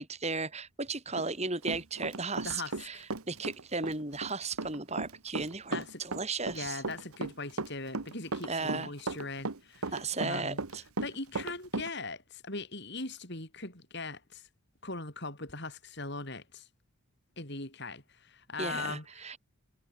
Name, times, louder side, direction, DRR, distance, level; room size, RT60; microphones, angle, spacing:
voice 1, 0.0-6.8 8.5-8.9 9.9-10.8 18.6-19.4, right 3 dB, 30° right, 4.4 m, -35 dB
Run, 1.2-2.8 3.1-11.9, right 3 dB, 80° right, 1.3 m, -36 dB
voice 2, 2.4-3.0 5.7-6.0 6.5-10.6 11.0-14.5 14.8-16.7 17.4-19.4, left 3 dB, 50° left, 5.9 m, -40 dB
head